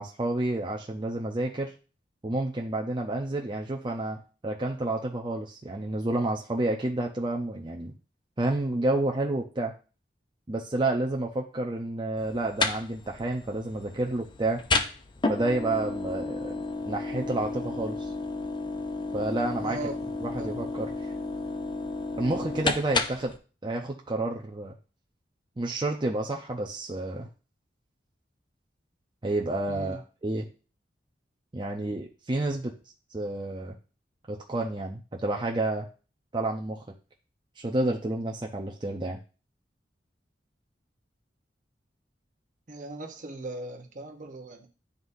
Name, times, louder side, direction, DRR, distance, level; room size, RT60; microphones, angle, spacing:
voice 1, 0.0-1.7 2.2-7.9 8.4-9.7 10.5-14.6 15.3-16.6 16.9-18.1 19.1-19.8 20.2-21.1 22.2-23.3 23.6-24.7 25.6-27.3 29.2-30.5 31.5-32.7 33.1-33.7 34.3-35.9 36.3-36.8 37.6-39.2, right 2 dB, 25° right, 0 dB, 0.6 m, -30 dB
sound 1, 12.2-23.4, left 3 dB, 25° left, 0.5 m, -32 dB
voice 2, 19.6-20.0 20.4-20.6 29.7-30.0 42.7-44.7, right 2 dB, 50° right, 3 dB, 1.0 m, -38 dB
11.0 x 4.0 x 2.7 m, 0.35 s
head